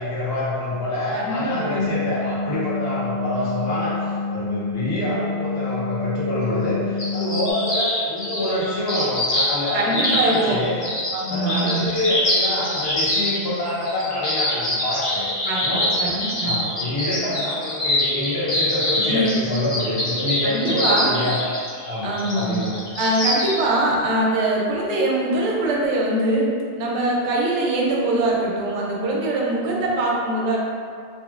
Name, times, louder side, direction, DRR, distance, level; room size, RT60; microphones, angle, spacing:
voice 1, 0.0-10.8 11.3-15.3 15.6-15.9 16.4-21.4 21.9-22.7, left 1 dB, 65° left, -9 dB, 1.0 m, -26 dB
sound 1, 1.5-7.5, left 4 dB, 60° right, 0.6 m, -28 dB
sound 2, 7.0-23.7, left 1 dB, 35° left, 0.6 m, -25 dB
voice 2, 9.7-10.6 11.1-11.9 15.5-16.6 18.9-19.4 20.4-21.1 22.0-22.7 23.0-30.6, right 1 dB, 90° right, -3 dB, 0.9 m, -23 dB
2.7 x 2.6 x 2.4 m, 2.3 s
omnidirectional pair, 1.1 m